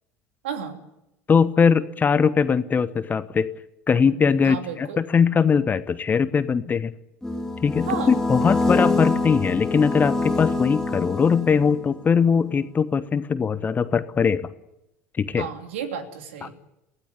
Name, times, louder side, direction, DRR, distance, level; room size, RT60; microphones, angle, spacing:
voice 1, 0.4-0.8 4.4-5.0 7.8-8.1 15.4-16.5, right 7 dB, 65° right, 6 dB, 2.9 m, -32 dB
voice 2, 1.3-3.5 3.9-6.9 7.6-14.5 15.2-15.5 16.4-16.5, left 6 dB, 25° left, 15 dB, 1.0 m, -21 dB
sound 1, 7.2-11.9, left 3 dB, 5° left, 3.0 m, -25 dB
24.0 x 16.5 x 9.6 m, 0.91 s
figure-of-eight pair, 70°, 7 cm